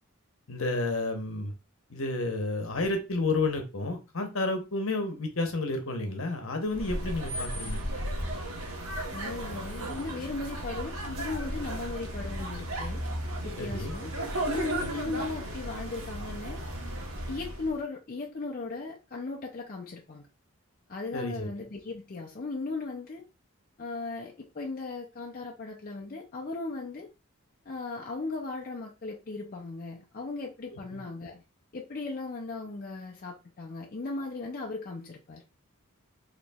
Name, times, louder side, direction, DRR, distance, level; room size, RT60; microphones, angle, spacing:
voice 1, 0.5-1.5 1.9-7.8 13.6-13.9 14.8-14.9 21.1-21.5 30.7-31.0, left 2 dB, 65° left, 0.9 m, -31 dB
sound 1, 6.7-17.8, right 1 dB, 80° right, 1.1 m, -35 dB
voice 2, 9.1-13.0 13.4-14.1 14.4-16.6 17.3-20.2 20.9-23.2 23.8-27.1 27.7-31.4 31.7-35.4, left 3 dB, 40° left, 0.5 m, -37 dB
4.3 x 3.0 x 2.3 m
head